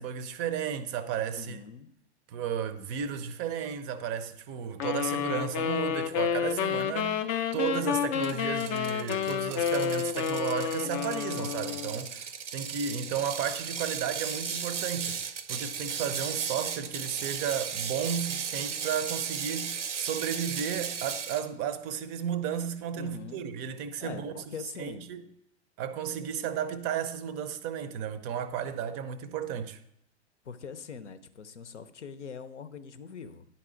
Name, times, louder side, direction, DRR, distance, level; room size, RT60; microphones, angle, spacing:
voice 1, 0.0-1.6 2.3-7.3 7.5-24.3 24.8-25.2 25.8-29.8, right 8 dB, 30° right, 0.5 m, -33 dB
voice 2, 1.4-1.9 23.0-23.4 24.0-25.1 30.4-33.5, left 6 dB, 80° left, 0.7 m, -42 dB
sound 1, 4.8-12.0, left 8 dB, 30° left, 0.4 m, -30 dB
Ratchet pawl, 8.2-21.4, right 7 dB, 85° right, 0.7 m, -36 dB
10.0 x 4.1 x 3.8 m
hypercardioid pair, 105°, 35 cm